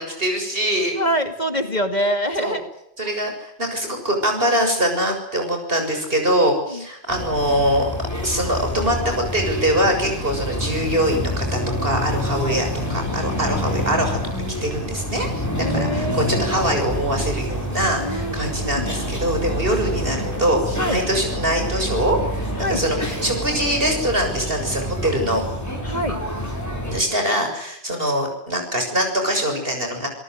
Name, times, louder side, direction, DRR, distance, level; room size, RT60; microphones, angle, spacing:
voice 1, 0.0-1.0 1.6-1.8 2.4-2.6 3.0-7.9 8.2-25.4 26.9-30.1, equal, 60° right, 4 dB, 7.3 m, -23 dB
voice 2, 1.0-2.6 3.0-3.1 5.8-5.9 6.7-6.8 12.4-12.7 15.6-16.5 18.0-19.0 20.8-21.0 22.6-22.8 25.8-26.2, equal, 40° left, 7 dB, 2.6 m, -25 dB
sound 1, 7.1-27.0, equal, 15° left, 5.5 m, -27 dB
29.0 x 18.5 x 8.1 m, 0.79 s
omnidirectional pair, 1.1 m